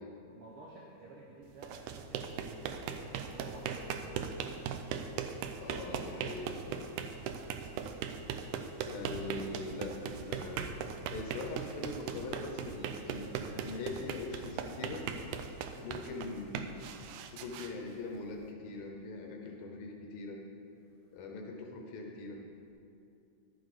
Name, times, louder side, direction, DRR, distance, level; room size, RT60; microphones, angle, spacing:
voice 1, 0.2-5.6 20.7-21.3, right 2 dB, 65° right, -3 dB, 1.5 m, -55 dB
sound 1, 1.5-18.5, right 7 dB, 85° right, 2.1 m, -39 dB
voice 2, 5.5-6.9 8.9-10.7 11.1-15.2 15.8-16.6 17.3-20.4 21.1-22.4, left 3 dB, 85° left, 1 dB, 2.5 m, -42 dB
11.5 x 8.0 x 5.0 m, 2.7 s
omnidirectional pair, 3.5 m